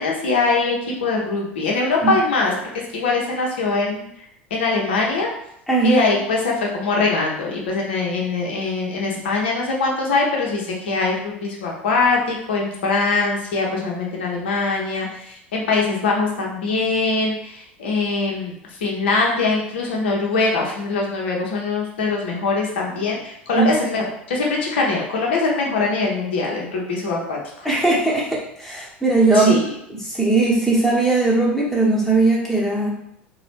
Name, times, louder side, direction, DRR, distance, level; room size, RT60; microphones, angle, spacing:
voice 1, 0.0-2.5 2.9-4.1 4.5-5.3 5.8-18.5 18.8-27.7 29.3-29.7, left 3 dB, 70° left, -1 dB, 0.9 m, -22 dB
voice 2, 5.7-6.1 23.5-23.7 27.6-29.6 29.9-32.9, right 3 dB, 5° left, -6 dB, 1.2 m, -18 dB
3.9 x 2.3 x 3.4 m, 0.76 s
figure-of-eight pair, 75°, 6 cm